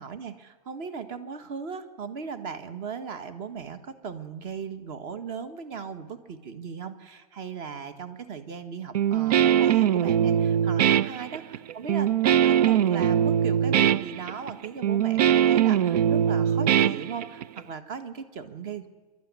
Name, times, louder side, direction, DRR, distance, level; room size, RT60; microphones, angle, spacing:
voice 1, 0.0-18.9, right 6 dB, 40° right, 10 dB, 1.7 m, -37 dB
Guitar, 9.0-17.6, right 10 dB, 85° right, 0.6 m, -22 dB
26.0 x 12.0 x 9.7 m, 1.3 s
supercardioid pair, 160°, 20 cm